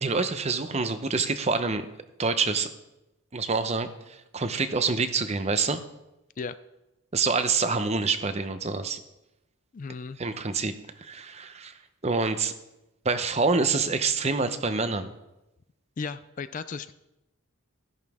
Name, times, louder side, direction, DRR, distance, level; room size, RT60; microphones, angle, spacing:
voice 1, 0.0-1.8 2.2-2.7 3.3-5.8 7.1-9.0 10.2-10.7 11.0-12.5 13.0-15.1, right 4 dB, 30° right, 10 dB, 0.7 m, -26 dB
voice 2, 9.7-10.2 16.0-16.9, left 5 dB, 35° left, 13 dB, 0.4 m, -35 dB
14.5 x 11.0 x 3.6 m, 0.93 s
head